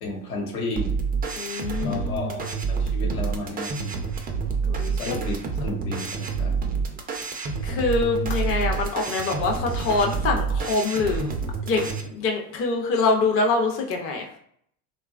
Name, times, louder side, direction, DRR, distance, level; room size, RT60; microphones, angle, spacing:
voice 1, 0.0-0.9 1.8-4.0 4.9-5.3 5.6-6.6, left 2 dB, 75° left, 0 dB, 1.0 m, -32 dB
sound 1, 0.8-12.0, right 5 dB, 20° right, 0.3 m, -28 dB
voice 2, 1.4-2.3 4.7-5.2 7.6-11.4 11.6-14.3, left 3 dB, 30° left, 1 dB, 0.5 m, -25 dB
2.8 x 2.3 x 2.4 m, 0.65 s
hypercardioid pair, 95°, 44 cm